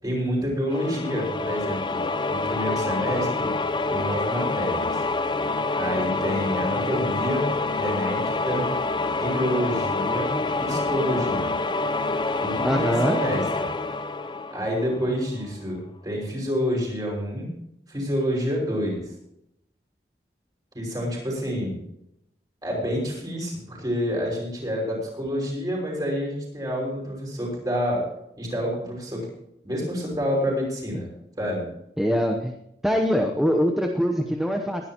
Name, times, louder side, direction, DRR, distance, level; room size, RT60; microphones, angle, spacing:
voice 1, 0.0-3.5 3.9-4.8 5.7-7.5 7.7-8.6 9.2-10.3 10.6-11.6 12.4-13.7 14.5-17.5 17.9-19.0 20.7-21.8 22.6-28.1 28.4-29.2 29.6-31.1 31.4-31.7, equal, 20° right, -2 dB, 5.9 m, -28 dB
sound 1, 0.7-15.3, left 3 dB, 25° left, 0.6 m, -27 dB
voice 2, 12.6-13.2 32.0-32.5 32.8-34.9, equal, ahead, 2 dB, 0.9 m, -23 dB
20.5 x 11.5 x 3.0 m, 0.80 s
head